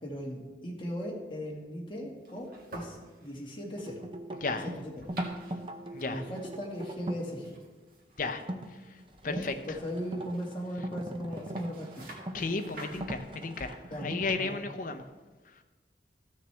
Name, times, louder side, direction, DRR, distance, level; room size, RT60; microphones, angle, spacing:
voice 1, 0.0-4.0 4.5-5.3 6.1-7.5 9.3-12.2 13.9-14.1 14.4-14.6, equal, 30° left, -2 dB, 1.7 m, -38 dB
sound 1, 2.1-13.1, right 2 dB, 50° right, 1.6 m, -52 dB
sound 2, 3.8-7.3 8.4-8.7 9.2-14.3, right 1 dB, 30° right, 0.6 m, -40 dB
voice 2, 9.2-9.5 12.3-15.0, left 3 dB, 50° left, 7 dB, 0.7 m, -33 dB
14.5 x 6.5 x 3.3 m, 1.3 s
head